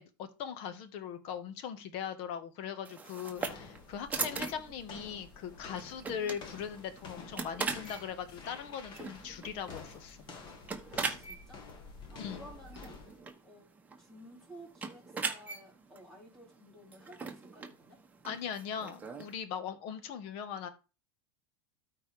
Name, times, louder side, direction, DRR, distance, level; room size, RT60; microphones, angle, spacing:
voice 1, 0.0-10.2 10.9-11.2 12.2-12.4 18.2-20.7, left 8 dB, 55° left, 1.4 m, -40 dB
sound 1, 2.8-19.3, right 4 dB, 15° right, 1.3 m, -41 dB
sound 2, 3.3-13.2, left 4 dB, 40° left, 1.8 m, -50 dB
voice 2, 11.0-11.6 12.1-13.0 13.4-13.7 14.0-18.0, right 1 dB, 5° left, 4.4 m, -54 dB
13.0 x 4.5 x 3.3 m
supercardioid pair, 130°, 12 cm